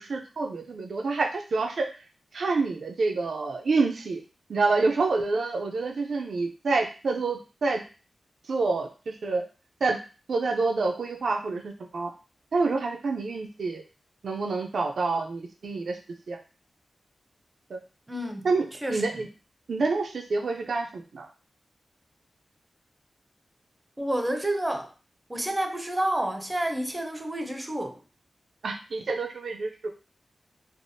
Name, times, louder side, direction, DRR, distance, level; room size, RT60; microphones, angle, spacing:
voice 1, 0.0-1.9 2.3-4.2 4.5-7.8 8.5-9.4 9.8-10.0 10.3-12.1 12.5-13.8 14.2-16.0 16.3-16.4 17.7-17.8 18.4-19.3 19.7-21.3 28.6-29.9, right 3 dB, 70° right, 3 dB, 0.4 m, -27 dB
voice 2, 18.1-18.5 18.8-19.2 24.0-24.9 25.3-28.0, right 1 dB, 20° right, 5 dB, 0.5 m, -29 dB
3.3 x 2.0 x 2.6 m, 0.34 s
wide cardioid pair, 85°, 0 cm